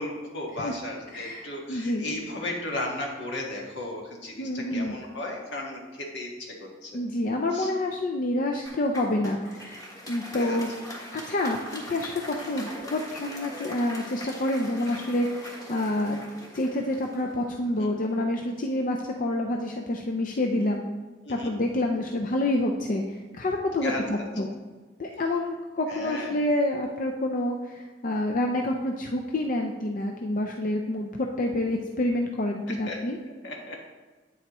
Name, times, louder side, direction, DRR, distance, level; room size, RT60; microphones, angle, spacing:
voice 1, 0.0-6.9 7.5-7.7 10.3-10.6 12.4-12.6 21.2-21.5 23.8-24.3 25.9-26.4 32.9-33.0 33.4-33.8, left 1 dB, 75° left, 0 dB, 1.6 m, -35 dB
voice 2, 1.1-2.1 4.4-5.0 6.9-10.7 11.1-16.2 16.5-20.8 21.3-24.5 25.0-33.2, left 1 dB, 50° left, 2 dB, 0.5 m, -28 dB
Applause, 8.7-18.0, equal, 20° left, 1.4 m, -42 dB
8.7 x 7.7 x 3.0 m, 1.3 s
head